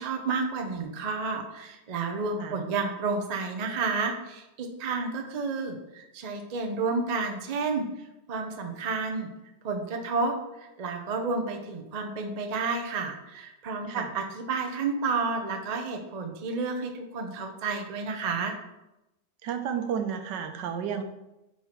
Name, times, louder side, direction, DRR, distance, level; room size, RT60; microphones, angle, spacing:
voice 1, 0.0-7.9 8.3-9.3 9.6-18.6, right 4 dB, 60° right, 3 dB, 0.4 m, -31 dB
voice 2, 19.4-21.0, right 8 dB, 90° right, 7 dB, 1.3 m, -32 dB
5.7 x 4.5 x 4.5 m, 0.96 s
omnidirectional pair, 1.8 m